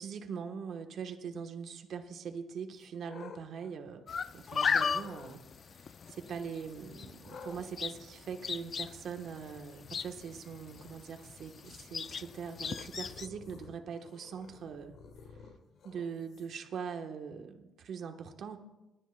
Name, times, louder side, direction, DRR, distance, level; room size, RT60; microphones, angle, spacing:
voice 1, 0.0-5.4 5.8-14.9 15.8-18.6, right 6 dB, 65° right, 5 dB, 1.1 m, -42 dB
sound 1, 2.7-4.4 4.9-5.4 7.2-16.7, left 5 dB, 70° left, 1.3 m, -54 dB
sound 2, 4.1-13.3, left 6 dB, 50° left, 0.4 m, -37 dB
29.0 x 10.0 x 2.2 m, 1.0 s
cardioid pair, 90°, 0 cm